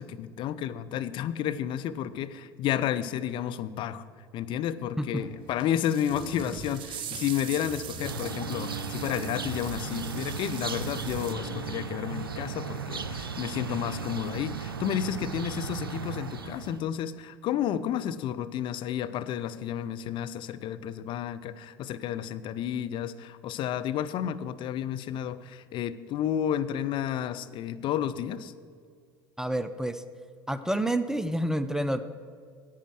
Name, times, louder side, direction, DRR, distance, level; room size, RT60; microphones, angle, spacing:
voice 1, 0.0-4.0 4.3-28.5, left 10 dB, 45° left, 12 dB, 0.6 m, -31 dB
sound 1, 5.1-14.7, right 2 dB, 25° right, 2.4 m, -44 dB
sound 2, 5.2-5.3 5.6-11.3, right 9 dB, 45° right, 0.7 m, -42 dB
sound 3, 8.0-16.8, right 5 dB, 85° right, 0.4 m, -36 dB
voice 2, 29.4-30.0 30.5-32.0, right 1 dB, 5° right, 11 dB, 0.5 m, -28 dB
10.5 x 8.6 x 6.2 m, 2.2 s
figure-of-eight pair, 70°, 12 cm